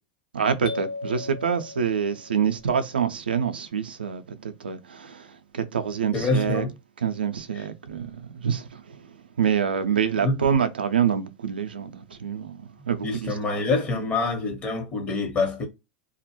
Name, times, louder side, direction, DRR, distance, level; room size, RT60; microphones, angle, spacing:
voice 1, 0.3-5.3 5.5-6.6 7.0-9.0 9.4-13.3, right 7 dB, 85° right, 0.4 m, -26 dB
sound 1, 0.7-2.6, left 3 dB, 80° left, 0.6 m, -37 dB
voice 2, 6.1-6.7 7.5-7.7 10.2-10.4 13.0-15.7, left 3 dB, 30° left, 1.0 m, -26 dB
2.3 x 2.0 x 2.9 m
hypercardioid pair, 95°, 5 cm